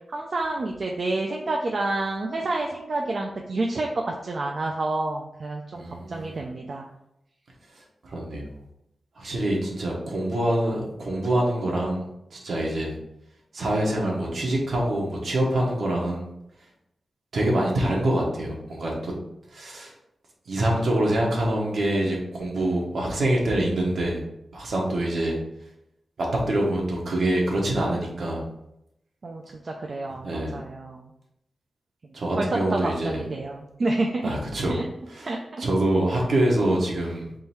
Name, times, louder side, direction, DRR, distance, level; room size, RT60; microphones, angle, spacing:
voice 1, 0.1-6.8 29.2-31.1 32.4-34.3 34.7-34.9 35.2-35.6, right 2 dB, 50° right, 1 dB, 0.4 m, -29 dB
voice 2, 5.7-6.4 8.0-8.5 9.2-13.0 13.5-16.3 17.3-19.1 19.5-19.9 20.5-24.2 24.5-25.4 26.2-28.4 30.2-30.6 32.1-33.2 34.2-34.8 35.2-35.3 35.6-37.3, right 1 dB, 65° right, -2 dB, 1.1 m, -25 dB
3.7 x 2.6 x 4.3 m, 0.84 s
wide cardioid pair, 110°, 0 cm